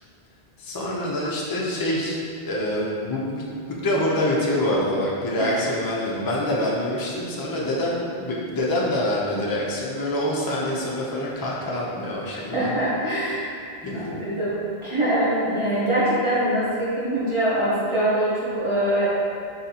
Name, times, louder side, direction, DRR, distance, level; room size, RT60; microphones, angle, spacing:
voice 1, 0.6-2.2 2.4-3.4 3.7-12.8 13.8-14.2, left 1 dB, 30° left, -4 dB, 0.4 m, -26 dB
voice 2, 12.5-13.5 13.9-19.1, right 1 dB, 35° right, -11 dB, 0.8 m, -23 dB
4.0 x 3.2 x 2.8 m, 2.4 s
omnidirectional pair, 1.1 m